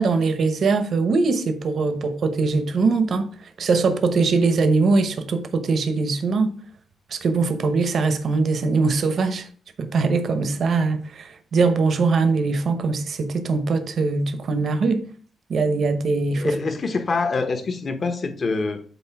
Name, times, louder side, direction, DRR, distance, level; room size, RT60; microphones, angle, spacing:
voice 1, 0.0-6.5 7.1-9.5 9.8-15.0 15.5-16.6, right 4 dB, 50° right, 0.9 m, -21 dB
voice 2, 16.4-18.8, left 3 dB, 35° left, 0.9 m, -25 dB
8.1 x 2.7 x 5.8 m
cardioid pair, 150°, 0 cm